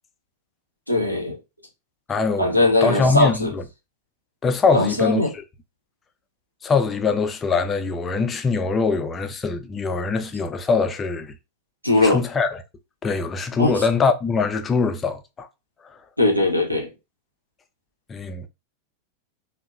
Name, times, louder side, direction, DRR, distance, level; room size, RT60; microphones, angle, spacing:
voice 1, 0.9-1.4 2.4-3.5 4.7-5.3 11.8-12.2 13.6-13.8 16.2-16.9, left 2 dB, 90° right, 0.7 m, -20 dB
voice 2, 2.1-3.6 4.4-5.2 6.6-11.4 12.0-12.5 13.0-15.5 15.8-16.0 18.1-18.5, left 4 dB, 20° left, 0.4 m, -23 dB
2.7 x 2.0 x 2.4 m
figure-of-eight pair, 90°, 0 cm